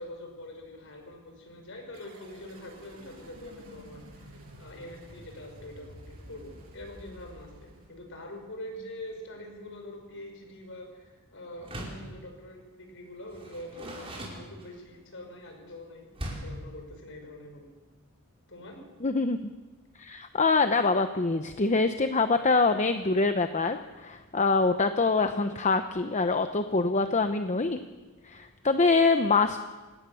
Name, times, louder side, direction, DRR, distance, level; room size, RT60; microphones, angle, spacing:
voice 1, 0.0-17.7 18.5-18.8, left 1 dB, 60° left, 4 dB, 5.7 m, -44 dB
sound 1, 1.9-8.4, right 1 dB, 70° right, 7.1 m, -50 dB
Door, 11.6-12.1 13.3-15.0 16.1-16.6, equal, 25° right, 5.2 m, -39 dB
voice 2, 19.0-19.4 20.0-27.8 28.2-29.6, left 3 dB, 30° left, 8 dB, 0.8 m, -25 dB
27.5 x 18.0 x 7.0 m, 1.3 s
head